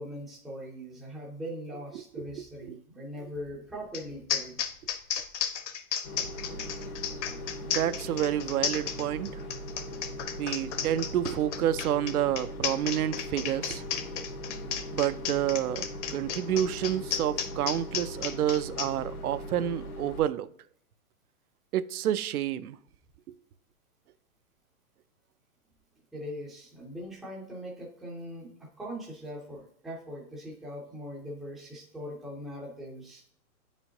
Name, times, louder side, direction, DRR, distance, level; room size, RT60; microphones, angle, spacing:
voice 1, 0.0-4.6 26.1-33.2, equal, ahead, 0.4 m, -41 dB
sound 1, 3.9-4.0 4.3-18.9, left 8 dB, 55° left, 0.9 m, -33 dB
sound 2, 6.0-20.2, equal, 85° left, 1.7 m, -40 dB
voice 2, 7.6-9.4 10.4-13.8 14.9-15.9 16.1-20.5 21.7-22.8, right 11 dB, 85° right, 0.6 m, -29 dB
8.6 x 5.0 x 2.7 m
hypercardioid pair, 135°, 43 cm